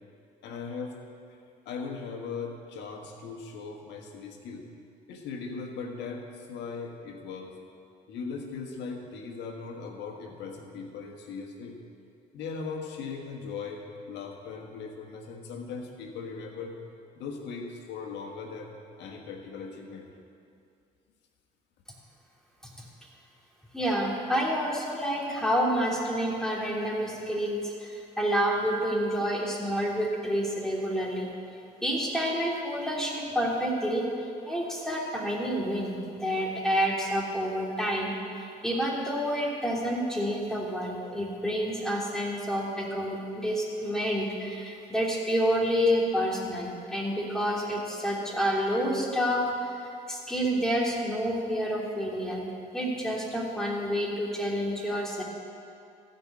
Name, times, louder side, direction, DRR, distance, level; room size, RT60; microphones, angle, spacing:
voice 1, 0.4-0.9 1.3-1.4 1.6-4.6 5.1-7.5 8.1-11.8 12.3-16.7 17.1-18.7 19.0-20.1, left 5 dB, 75° left, 2 dB, 1.5 m, -39 dB
voice 2, 23.7-31.3 31.8-34.1 34.4-52.4 52.7-55.2, equal, 5° left, -3 dB, 2.9 m, -29 dB
14.5 x 5.4 x 8.5 m, 2.5 s
supercardioid pair, 65°, 18 cm